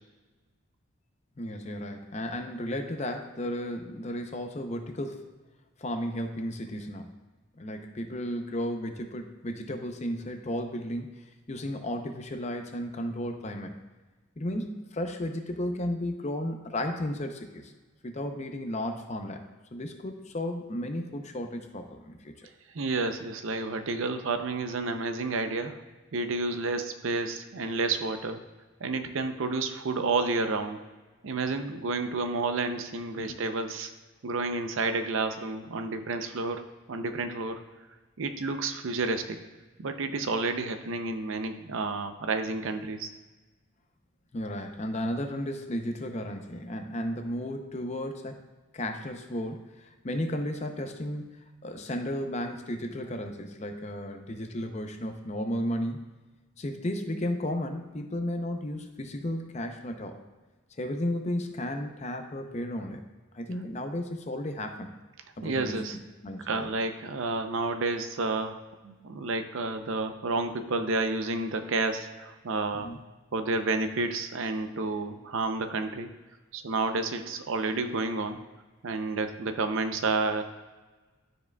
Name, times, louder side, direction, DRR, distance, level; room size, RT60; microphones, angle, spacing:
voice 1, 1.4-5.3 5.8-7.1 7.6-11.1 11.5-13.7 14.4-17.7 18.0-22.5 33.1-33.4 44.3-48.4 48.7-51.3 51.6-56.0 56.6-60.2 60.8-63.0 63.3-65.0 65.4-65.8 66.2-66.7 72.7-73.0, left 1 dB, 30° left, 5 dB, 0.5 m, -34 dB
voice 2, 22.7-25.8 26.1-28.4 28.8-30.8 31.2-33.9 34.2-36.6 36.9-37.6 38.2-39.4 39.8-43.1 65.4-66.0 66.4-72.9 73.3-76.1 76.5-78.4 78.8-80.4, right 3 dB, 65° right, 8 dB, 0.5 m, -30 dB
12.0 x 4.7 x 2.2 m, 1.3 s
head